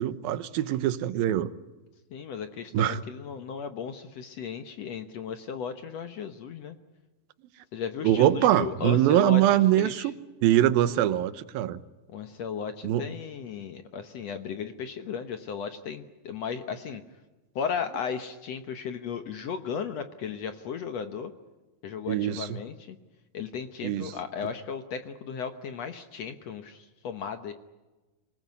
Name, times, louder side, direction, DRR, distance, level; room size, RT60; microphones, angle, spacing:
voice 1, 0.0-1.5 2.7-3.0 8.0-10.1 10.4-11.8 12.8-13.0 22.1-22.6 23.8-24.1, right 12 dB, 90° right, 14 dB, 2.8 m, -23 dB
voice 2, 2.1-6.8 7.7-9.4 9.8-10.1 12.1-17.0 17.5-21.3 21.8-23.0 23.3-27.5, left 6 dB, 65° left, 8 dB, 1.8 m, -35 dB
26.0 x 19.0 x 9.5 m, 1.2 s
omnidirectional pair, 4.1 m